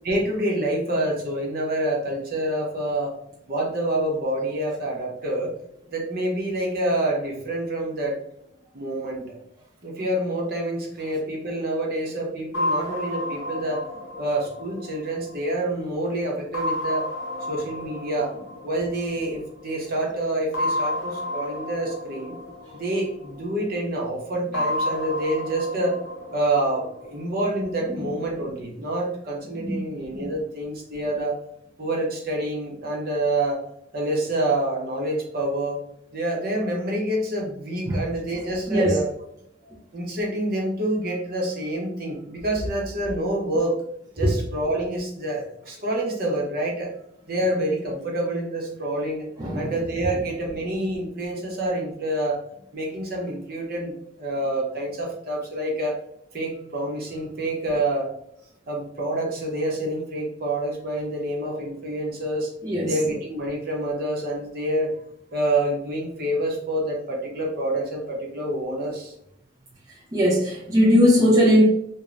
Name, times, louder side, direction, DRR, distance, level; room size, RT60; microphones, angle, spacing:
voice 1, 0.0-3.1 3.5-5.5 5.9-8.2 8.7-9.2 9.8-13.8 14.2-17.0 17.5-18.3 18.6-22.3 22.7-26.0 26.3-31.4 31.8-33.6 33.9-35.8 36.1-39.1 39.9-43.8 44.2-46.9 47.3-49.3 49.5-52.4 52.7-56.0 56.3-58.1 58.7-62.5 62.8-64.9 65.3-69.1, right 1 dB, 50° right, -1 dB, 0.7 m, -27 dB
sound 1, 12.5-15.9 16.5-19.5 20.5-23.7 24.5-27.7, left 1 dB, 80° left, 0.7 m, -31 dB
voice 2, 49.4-49.7 62.6-62.9 70.1-71.6, equal, 20° right, -5 dB, 0.4 m, -19 dB
3.1 x 2.1 x 2.4 m, 0.76 s
head